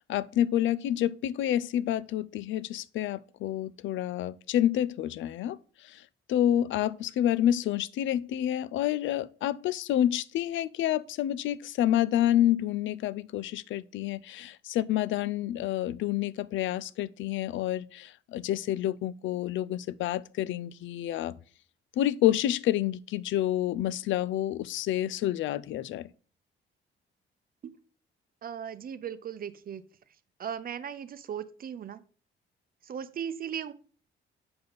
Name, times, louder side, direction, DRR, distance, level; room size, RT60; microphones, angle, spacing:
voice 1, 0.1-6.0 6.3-21.4 22.0-26.1, left 12 dB, 75° left, 0.4 m, -28 dB
voice 2, 28.4-29.8 30.4-32.0 32.8-33.7, right 8 dB, 45° right, 0.7 m, -37 dB
6.9 x 5.3 x 4.0 m
cardioid pair, 90°, 20 cm